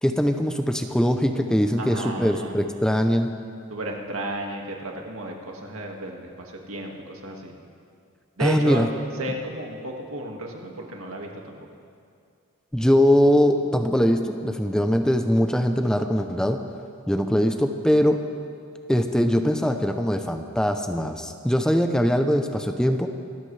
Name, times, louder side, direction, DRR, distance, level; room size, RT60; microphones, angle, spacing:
voice 1, 0.0-3.3 8.4-8.9 12.7-16.6 17.1-18.2 18.9-23.1, equal, 5° left, 6 dB, 0.6 m, -21 dB
voice 2, 1.8-2.6 3.7-7.5 8.4-8.8 9.2-11.7, right 2 dB, 85° right, 0 dB, 2.0 m, -33 dB
26.0 x 13.5 x 3.3 m, 2.3 s
head